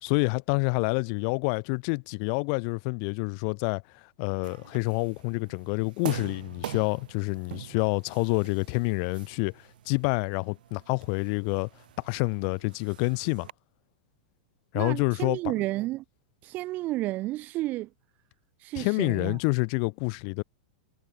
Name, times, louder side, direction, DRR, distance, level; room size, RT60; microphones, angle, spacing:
voice 1, 0.0-3.8 4.2-11.7 12.0-13.5 14.7-15.4 18.7-20.4, left 40 dB or more, 50° left, 3.4 m, -28 dB
sound 1, 4.4-13.5, right 12 dB, 75° right, 7.5 m, -44 dB
voice 2, 14.7-16.0 16.4-17.9 18.6-19.4, right 17 dB, 40° right, 3.0 m, -31 dB
hypercardioid pair, 130°, 5 cm